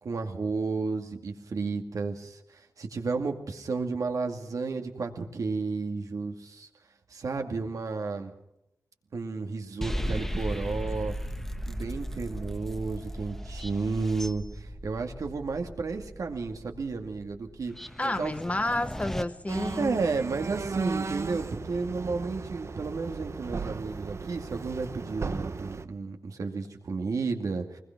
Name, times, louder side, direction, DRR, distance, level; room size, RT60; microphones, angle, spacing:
voice 1, 0.0-6.7 7.1-8.3 9.1-11.1 11.7-17.7 18.0-18.4 19.8-27.8, right 4 dB, 80° right, 2.4 m, -32 dB
sound 1, 9.8-19.2, equal, 5° left, 1.4 m, -36 dB
voice 2, 18.0-20.0, left 2 dB, 25° left, 1.2 m, -30 dB
sound 2, 19.5-25.8, right 4 dB, 55° right, 1.0 m, -36 dB
23.5 x 20.5 x 6.0 m
wide cardioid pair, 75°, 6 cm